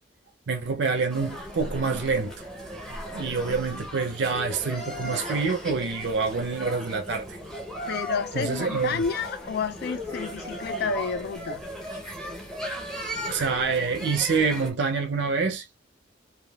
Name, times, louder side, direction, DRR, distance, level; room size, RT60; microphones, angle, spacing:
voice 1, 0.5-2.3 3.1-7.4 8.3-9.0 13.3-15.6, right 4 dB, 65° right, 0.5 m, -26 dB
sound 1, 1.1-14.7, equal, 5° left, 0.7 m, -36 dB
voice 2, 7.9-11.6, left 5 dB, 55° left, 0.3 m, -30 dB
3.4 x 2.3 x 2.2 m
head